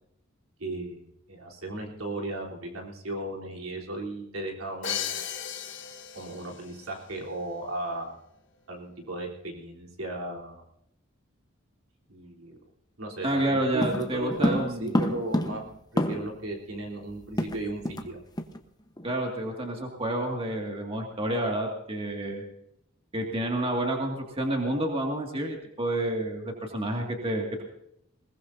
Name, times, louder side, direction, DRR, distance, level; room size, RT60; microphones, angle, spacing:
voice 1, 0.6-1.0 1.3-5.2 6.1-8.2 8.7-10.6 12.1-12.6 13.0-15.7 15.9-18.2, right 2 dB, 75° right, -1 dB, 3.6 m, -36 dB
Crash cymbal, 4.8-6.7, left 9 dB, 60° left, 1.4 m, -35 dB
voice 2, 13.2-15.0 19.0-22.4 23.1-27.6, right 1 dB, 25° right, 1 dB, 2.0 m, -29 dB
sound 1, 13.8-16.5 16.7-16.8 17.1-18.1 18.4-18.6 19.0-19.2, left 1 dB, 20° left, 1.0 m, -29 dB
21.0 x 20.0 x 2.7 m, 0.76 s
head